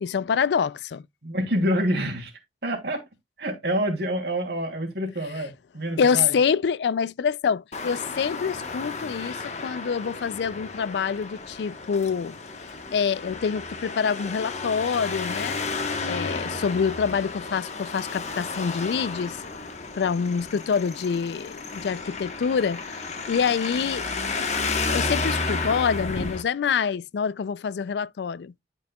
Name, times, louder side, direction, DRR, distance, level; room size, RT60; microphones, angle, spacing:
voice 1, 0.0-1.0 6.0-12.4 12.9-15.6 16.0-19.4 19.9-24.6 24.9-28.5, left 6 dB, 70° left, 0.4 m, -26 dB
voice 2, 1.2-2.3 2.6-3.0 3.4-6.3, equal, 65° right, 2.9 m, -27 dB
Traffic noise roadway noise, 7.7-26.4, left 3 dB, 40° left, 1.2 m, -32 dB
11.5 x 5.4 x 2.3 m
head